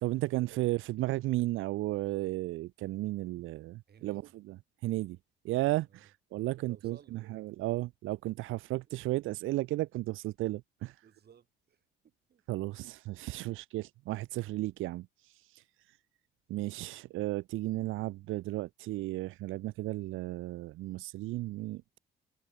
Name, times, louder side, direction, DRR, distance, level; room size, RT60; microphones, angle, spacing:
voice 1, 0.0-4.2 4.5-4.6 4.8-5.2 5.4-11.0 12.5-16.0 16.5-22.0, right 17 dB, 90° right, 0.6 m, -34 dB
voice 2, 3.9-4.4 5.9-6.1 6.6-7.3 8.6-8.7 11.0-12.4 16.6-16.8, right 8 dB, 55° right, 6.7 m, -60 dB
cardioid pair, 90°, 20 cm